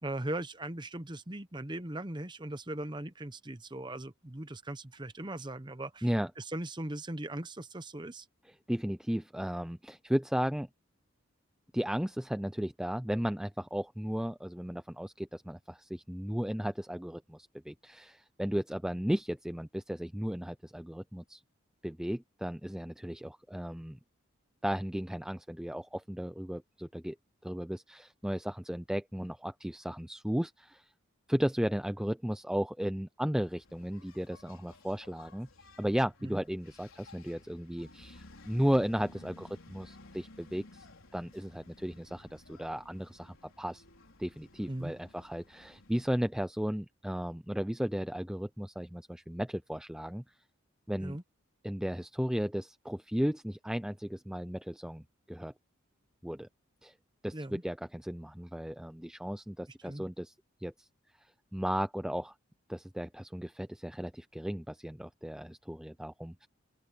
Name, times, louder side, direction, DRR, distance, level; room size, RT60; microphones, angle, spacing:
voice 1, 0.0-6.1 6.4-8.3 36.2-36.4 44.7-44.9 51.0-51.2 57.3-57.6 59.8-60.0, right 1 dB, 20° right, 0.9 m, -39 dB
voice 2, 8.7-10.7 11.7-21.4 21.8-24.0 24.6-27.2 27.4-30.9 31.3-35.5 35.8-40.9 41.1-43.8 44.2-50.2 50.9-51.2 51.6-55.5 56.2-56.5 56.8-56.9 57.2-60.3 60.6-60.9 61.5-62.3 62.7-66.5, equal, 5° right, 0.4 m, -35 dB
Engine, 33.3-46.3, left 2 dB, 75° left, 4.3 m, -56 dB
open air
head